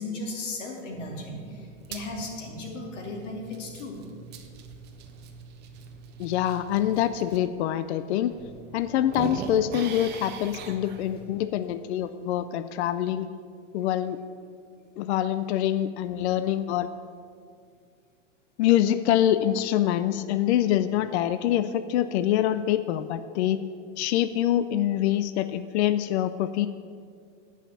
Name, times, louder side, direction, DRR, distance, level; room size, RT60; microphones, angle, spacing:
voice 1, 0.0-4.0, left 2 dB, 80° left, 0 dB, 2.5 m, -36 dB
sound 1, 0.9-7.4 7.9-8.0 8.3-11.3, right 5 dB, 30° right, 0.9 m, -41 dB
voice 2, 6.2-8.3 8.7-13.3 13.7-14.2 15.0-16.9 18.6-23.6 24.0-26.7, left 11 dB, 65° left, 12 dB, 0.5 m, -25 dB
9.8 x 5.7 x 7.2 m, 2.1 s
supercardioid pair, 140°, 36 cm